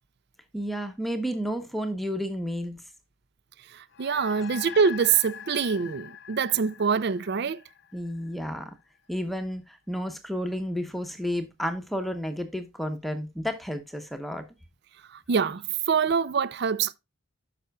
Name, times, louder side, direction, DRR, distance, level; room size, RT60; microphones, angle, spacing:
voice 1, 0.5-2.8 7.9-8.7 9.1-14.4, equal, ahead, 0.9 m, -31 dB
voice 2, 3.7-7.6 15.1-16.9, right 6 dB, 50° right, 0.4 m, -25 dB
sound 1, 3.9-8.6, left 8 dB, 50° left, 0.4 m, -43 dB
12.0 x 5.6 x 2.3 m
head